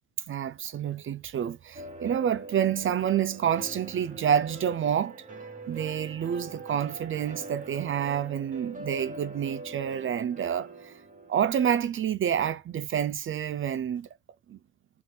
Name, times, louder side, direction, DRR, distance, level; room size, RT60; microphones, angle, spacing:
voice 1, 0.3-5.2 5.7-10.9 11.3-14.1 14.5-14.6, right 9 dB, 45° right, 0.4 m, -28 dB
sound 1, 1.7-11.7, right 2 dB, 25° right, 1.3 m, -43 dB
3.4 x 2.9 x 2.2 m
cardioid pair, 90°, 30 cm